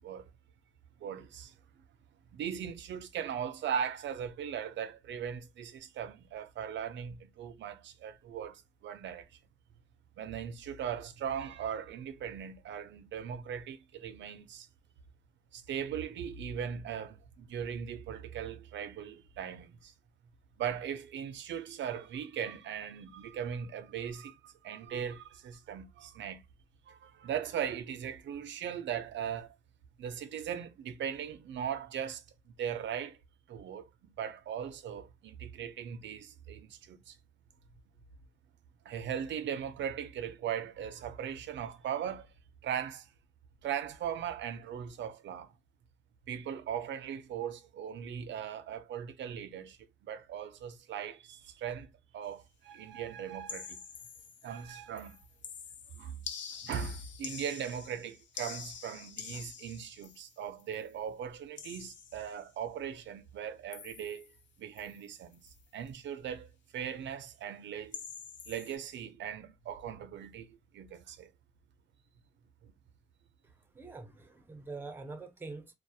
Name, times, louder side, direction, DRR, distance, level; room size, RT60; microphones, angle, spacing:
voice 1, 1.0-1.5 2.3-9.3 10.2-14.7 15.5-19.9 20.6-26.4 26.9-29.5 30.0-33.2 33.5-37.2 38.8-42.3 42.6-43.1 43.6-45.5 46.3-51.9 52.1-53.8 54.4-55.2 55.9-56.2 56.6-64.3 64.6-68.0 68.5-71.3, right 8 dB, 80° right, 0.4 m, -39 dB
sound 1, 53.5-54.7 55.0-60.9 61.6-62.5 63.7-64.4 64.8-65.1 65.3-65.6 67.9-68.8, left 7 dB, 85° left, 0.5 m, -46 dB
voice 2, 73.4-75.7, right 3 dB, 10° right, 0.4 m, -45 dB
2.3 x 2.0 x 2.6 m
wide cardioid pair, 140°, 19 cm